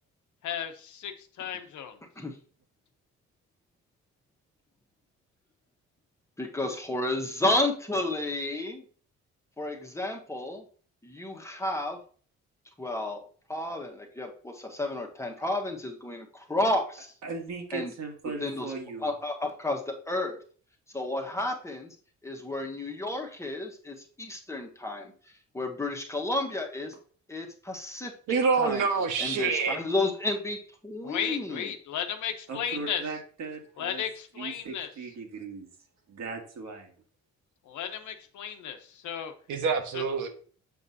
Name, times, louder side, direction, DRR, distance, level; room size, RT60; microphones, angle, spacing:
voice 1, 0.4-2.0 31.0-33.0 33.8-34.9 37.7-39.3 39.9-40.0, left 9 dB, 75° left, 7 dB, 1.1 m, -34 dB
voice 2, 6.4-8.8 9.6-10.6 11.0-12.0 12.8-13.2 13.5-17.1 17.7-17.9 18.4-18.7 19.0-20.4 20.9-21.9 22.2-25.1 25.5-26.9 27.3-28.1 28.6-28.9 29.2-31.7, left 2 dB, 10° left, 2 dB, 1.3 m, -31 dB
voice 3, 17.2-19.1 32.5-34.0 34.4-35.7 36.1-36.9, right 4 dB, 60° right, 2 dB, 1.9 m, -38 dB
voice 4, 28.3-29.8 39.5-40.3, right 5 dB, 90° right, 3 dB, 1.4 m, -26 dB
7.3 x 5.3 x 2.8 m, 0.43 s
cardioid pair, 90°, 30 cm